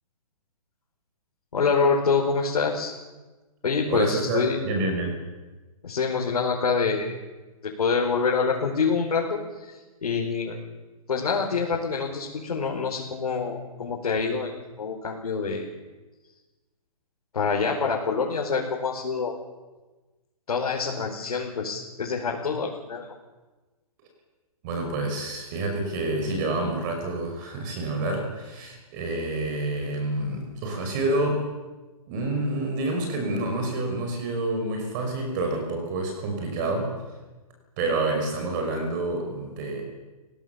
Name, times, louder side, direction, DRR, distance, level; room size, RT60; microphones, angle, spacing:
voice 1, 1.5-2.9 3.6-4.6 5.8-7.1 7.6-10.6 11.1-14.5 14.8-15.7 17.3-19.3 20.5-23.1, left 5 dB, 85° left, -2 dB, 5.0 m, -26 dB
voice 2, 3.9-5.2 24.6-31.5 32.1-37.0 37.8-39.8, right 2 dB, 30° right, 3 dB, 5.7 m, -28 dB
30.0 x 18.0 x 7.2 m, 1.2 s
hypercardioid pair, 155°, 19 cm